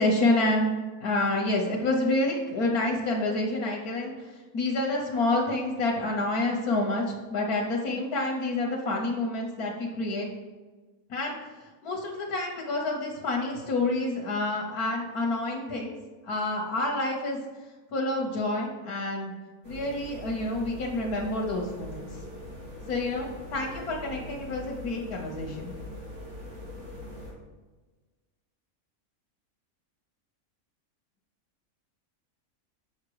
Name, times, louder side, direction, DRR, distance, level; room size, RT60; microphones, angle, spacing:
voice 1, 0.0-10.3 11.1-11.4 11.8-16.0 16.2-17.4 17.9-19.3 19.6-22.1 22.9-25.7, left 2 dB, 85° left, -1 dB, 1.7 m, -28 dB
sound 1, 19.6-27.3, left 1 dB, 75° right, 3.0 m, -42 dB
7.4 x 5.6 x 4.8 m, 1.3 s
omnidirectional pair, 1.6 m